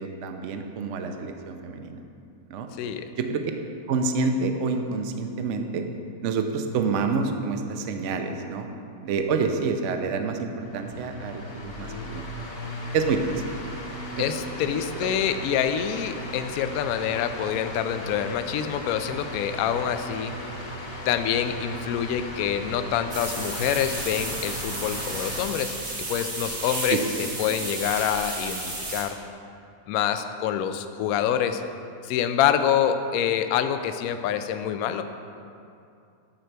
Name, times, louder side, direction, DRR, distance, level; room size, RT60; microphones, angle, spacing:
voice 1, 0.0-2.0 2.5-2.7 3.2-3.4 3.9-5.8 6.2-8.7 9.0-12.2 12.9-13.2 14.3-14.4 15.0-15.1 26.9-27.0 27.5-27.6, right 4 dB, 65° right, 6 dB, 0.7 m, -28 dB
voice 2, 2.8-3.1 14.2-20.3 21.1-29.2 29.9-31.6 32.0-35.0, left 9 dB, 75° left, 9 dB, 0.8 m, -26 dB
sound 1, 10.6-25.5, equal, 40° left, 1.1 m, -37 dB
sound 2, 23.1-29.0, right 2 dB, 85° right, 2.8 m, -33 dB
10.0 x 4.5 x 6.6 m, 2.5 s
omnidirectional pair, 2.0 m